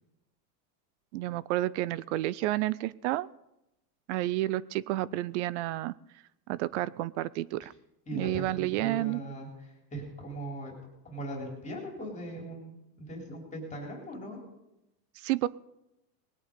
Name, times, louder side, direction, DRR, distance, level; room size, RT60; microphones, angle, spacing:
voice 1, 1.1-3.3 4.1-5.9 6.5-7.7 8.1-9.2 15.2-15.5, right 16 dB, 50° right, 21 dB, 0.5 m, -30 dB
voice 2, 8.1-10.7 11.0-14.5, right 1 dB, 15° left, -1 dB, 3.6 m, -39 dB
20.0 x 8.8 x 5.2 m, 0.89 s
supercardioid pair, 135°, 48 cm